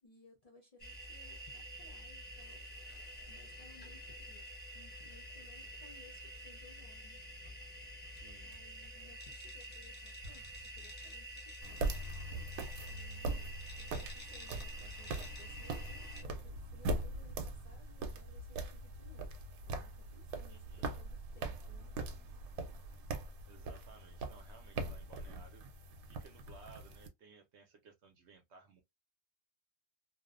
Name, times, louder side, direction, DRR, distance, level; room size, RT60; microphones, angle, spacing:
voice 1, 0.0-2.6 3.3-4.5 4.7-7.2 7.7-7.9 8.4-12.0 12.8-19.4 19.6-22.0 22.2-22.4, left 3 dB, 75° left, 0.3 m, -62 dB
sound 1, 0.8-16.2, equal, 10° left, 0.5 m, -49 dB
voice 2, 8.1-8.6 20.5-20.9 23.5-25.7 26.1-28.8, right 4 dB, 65° right, 0.7 m, -59 dB
sound 2, 10.2-11.8, left 1 dB, 30° right, 0.7 m, -56 dB
sound 3, 11.6-27.1, right 2 dB, 85° right, 1.0 m, -41 dB
2.5 x 2.1 x 2.4 m
omnidirectional pair, 1.5 m